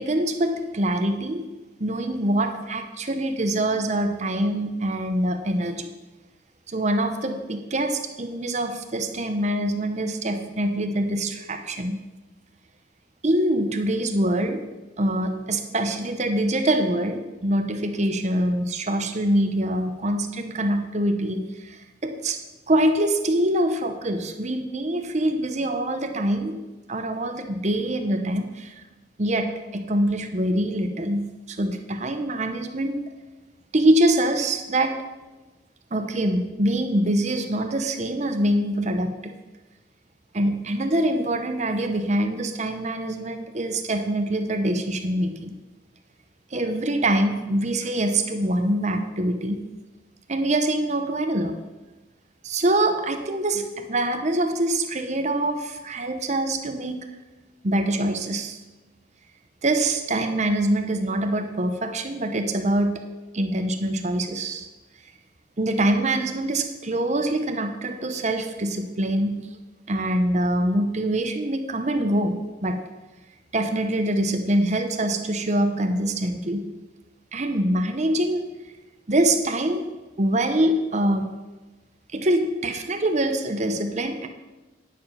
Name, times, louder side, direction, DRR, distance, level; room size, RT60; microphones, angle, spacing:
voice 1, 0.0-1.5 1.8-5.9 6.7-12.0 13.2-14.6 15.0-21.8 22.0-22.4 22.7-26.6 26.9-28.7 29.2-33.0 33.7-35.0 35.9-39.4 40.3-45.5 46.5-49.7 50.3-51.6 52.4-57.1 57.6-58.6 59.6-63.1 63.3-64.7 65.6-69.5 69.9-72.8 73.5-76.7 77.3-78.5 79.1-81.3 82.1-84.3, right 1 dB, 40° right, 6 dB, 0.9 m, -24 dB
9.8 x 6.9 x 5.7 m, 1.1 s
head